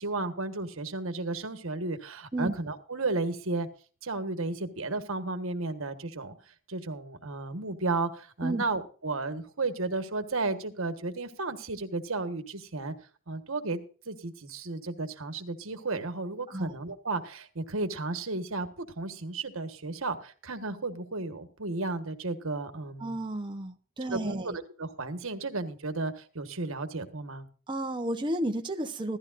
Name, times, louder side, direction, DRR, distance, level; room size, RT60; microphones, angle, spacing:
voice 1, 0.0-3.7 4.0-6.3 6.7-12.9 13.3-13.8 14.0-23.2 24.1-27.5, right 3 dB, 75° right, 8 dB, 1.5 m, -33 dB
voice 2, 23.0-24.6 27.7-29.2, right 1 dB, 20° right, 4 dB, 0.9 m, -32 dB
16.0 x 13.5 x 2.6 m, 0.39 s
head